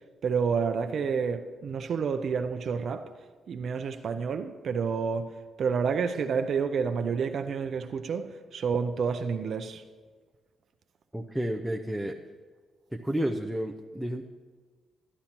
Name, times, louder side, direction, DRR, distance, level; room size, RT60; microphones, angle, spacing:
voice 1, 0.2-3.1 3.5-5.3 5.6-9.8, right 6 dB, 55° right, 0.5 m, -29 dB
voice 2, 11.1-12.2 12.9-14.2, equal, ahead, 0.5 m, -31 dB
12.0 x 11.5 x 2.9 m
cardioid pair, 115°, 0 cm